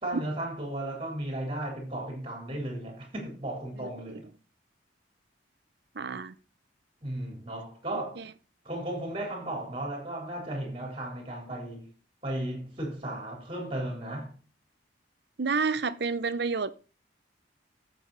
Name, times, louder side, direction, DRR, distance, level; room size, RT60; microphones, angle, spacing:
voice 1, 0.0-4.3 7.0-8.3 8.7-11.9 12.2-14.4, right 1 dB, 30° right, 3.8 m, -35 dB
voice 2, 5.9-6.3 7.9-8.3 15.4-16.7, right 4 dB, 60° right, 0.7 m, -30 dB
14.0 x 7.1 x 4.0 m
head